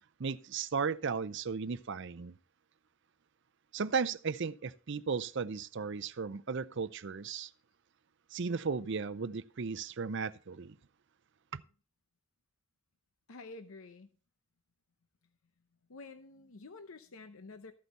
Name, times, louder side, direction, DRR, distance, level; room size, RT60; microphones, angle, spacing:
voice 1, 0.2-2.4 3.7-7.5 8.3-10.8 11.5-11.6, right 5 dB, 55° right, 0.5 m, -35 dB
voice 2, 13.3-14.1 15.9-17.7, left 3 dB, 70° left, 0.7 m, -49 dB
14.0 x 8.1 x 4.2 m
head